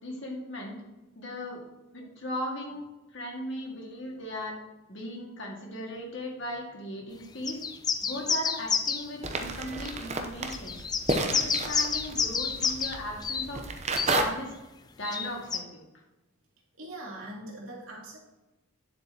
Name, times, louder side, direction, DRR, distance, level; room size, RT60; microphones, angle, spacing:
voice 1, 0.0-0.8 1.2-1.6 1.9-2.9 3.1-4.6 4.9-7.6 8.0-10.8 11.1-13.6 14.1-14.5 15.0-15.8, left 1 dB, 60° left, -1 dB, 2.0 m, -37 dB
sound 1, 7.5-9.1 9.9-10.0 10.5-13.0 13.2-13.5 14.0-14.2 15.0-15.6, left 6 dB, 20° left, 0.3 m, -29 dB
sound 2, 9.2-14.2, right 3 dB, 30° right, 0.7 m, -32 dB
voice 2, 16.8-18.2, right 1 dB, 75° right, -3 dB, 2.6 m, -41 dB
9.5 x 7.7 x 2.9 m, 1.0 s
head